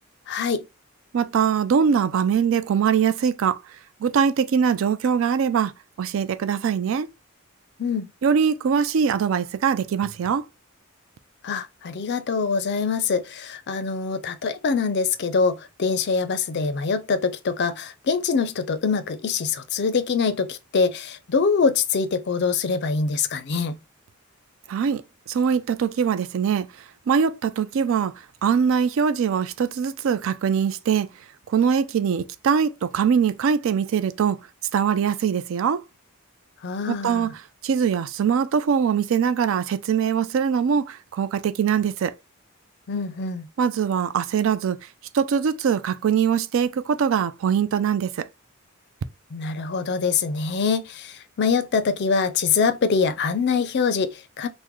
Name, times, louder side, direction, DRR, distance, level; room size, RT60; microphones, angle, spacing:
voice 1, 0.3-0.7 7.8-8.1 11.4-23.8 36.6-37.3 42.9-43.5 49.3-54.5, left 5 dB, 50° left, 0.4 m, -24 dB
voice 2, 1.1-3.6 4.0-5.7 6.0-7.1 8.2-10.4 24.7-25.0 25.3-26.7 27.1-28.1 28.4-31.1 31.5-34.4 34.7-35.8 36.9-37.4 37.6-42.1 43.6-44.8 45.1-48.3, right 7 dB, 65° right, 0.3 m, -22 dB
3.6 x 2.1 x 3.0 m
head